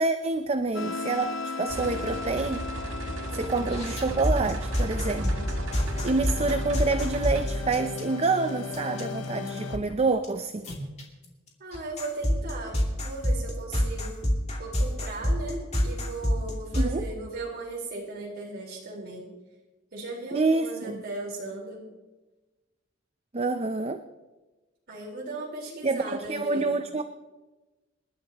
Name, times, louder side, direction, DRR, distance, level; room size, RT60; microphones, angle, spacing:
voice 1, 0.0-2.6 3.3-5.5 6.0-10.7 16.7-17.0 20.3-21.0 23.3-24.0 25.8-27.0, right 3 dB, 30° right, 8 dB, 0.6 m, -27 dB
sound 1, 0.7-9.8, left 4 dB, 75° left, 0.9 m, -37 dB
sound 2, 1.7-7.4, right 1 dB, 75° right, 1.9 m, -35 dB
voice 2, 3.3-3.8 11.6-14.2 14.6-19.3 19.9-21.8 24.9-26.8, right 2 dB, 50° right, -4 dB, 4.3 m, -37 dB
sound 3, 3.7-8.2 8.7-9.0 9.5-9.9 10.2-10.3 10.6-11.0 11.7-16.9, equal, 35° left, 2.8 m, -27 dB
27.5 x 11.5 x 3.0 m, 1.1 s
head